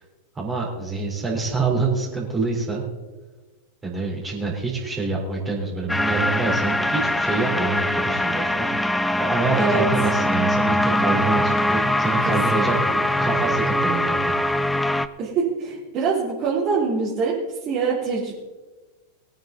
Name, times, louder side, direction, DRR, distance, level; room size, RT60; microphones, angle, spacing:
voice 1, 0.4-2.8 3.8-12.7 13.2-14.3, right 3 dB, 15° right, -2 dB, 4.1 m, -26 dB
sound 1, 5.9-15.1, left 1 dB, 5° left, 0.6 m, -22 dB
voice 2, 9.5-9.9 12.2-13.0 15.2-18.3, right 5 dB, 35° right, -6 dB, 3.4 m, -25 dB
21.0 x 9.2 x 4.0 m, 1.2 s
figure-of-eight pair, 90°, 0 cm